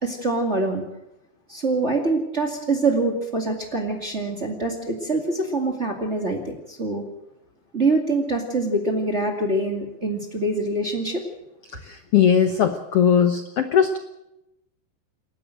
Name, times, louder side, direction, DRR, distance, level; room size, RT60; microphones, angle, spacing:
voice 1, 0.0-0.8 1.5-7.0 7.7-11.2, right 2 dB, 25° right, 1 dB, 1.9 m, -24 dB
voice 2, 11.8-14.0, left 8 dB, 65° left, 7 dB, 1.5 m, -19 dB
29.0 x 11.5 x 7.7 m, 0.91 s
omnidirectional pair, 4.1 m